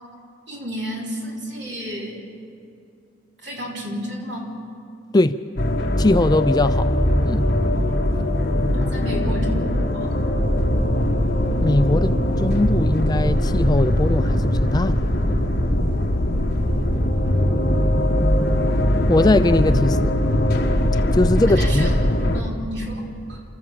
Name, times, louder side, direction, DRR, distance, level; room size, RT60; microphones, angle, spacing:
voice 1, 0.5-2.2 3.4-4.5 8.4-8.5 8.7-10.2 21.5-21.9 22.3-23.4, equal, 60° right, -1 dB, 3.6 m, -32 dB
sound 1, 5.6-22.4, left 1 dB, 50° left, 1.7 m, -20 dB
voice 2, 6.0-6.9 7.2-7.5 11.6-15.0 19.1-20.2 21.1-21.9, left 2 dB, 20° left, 11 dB, 0.4 m, -20 dB
29.0 x 13.5 x 7.3 m, 2.5 s
head